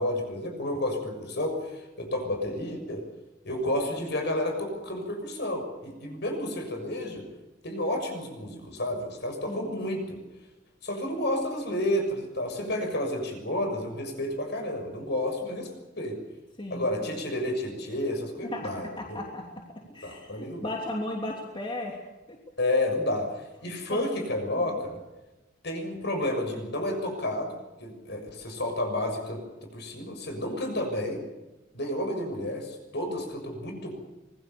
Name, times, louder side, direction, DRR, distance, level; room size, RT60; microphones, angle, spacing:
voice 1, 0.0-3.0 3.4-7.2 7.6-10.2 10.8-16.2 16.7-19.2 20.0-20.7 22.6-25.0 25.6-27.5 27.8-31.2 31.7-33.9, left 1 dB, 60° left, 5 dB, 6.6 m, -31 dB
voice 2, 16.6-17.2 18.4-18.6 19.0-19.4 19.9-22.0 22.3-22.4 23.9-24.1 24.4-24.8, left 1 dB, 25° left, 0 dB, 3.1 m, -36 dB
26.5 x 21.0 x 7.0 m, 1.0 s
head